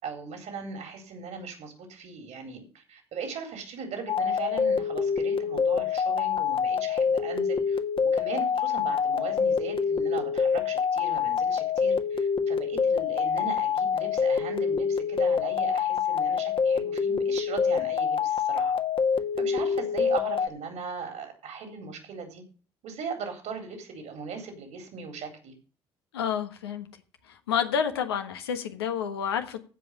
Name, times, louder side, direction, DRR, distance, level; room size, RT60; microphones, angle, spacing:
voice 1, 0.0-7.8 8.1-18.8 19.4-22.4 22.8-25.5, right 5 dB, 65° right, 4.0 m, -38 dB
sound 1, 4.1-20.5, left 6 dB, 45° left, 1.5 m, -26 dB
voice 2, 26.1-26.9 27.5-29.6, left 8 dB, 90° left, 1.4 m, -29 dB
15.5 x 5.4 x 7.2 m
hypercardioid pair, 50°, 13 cm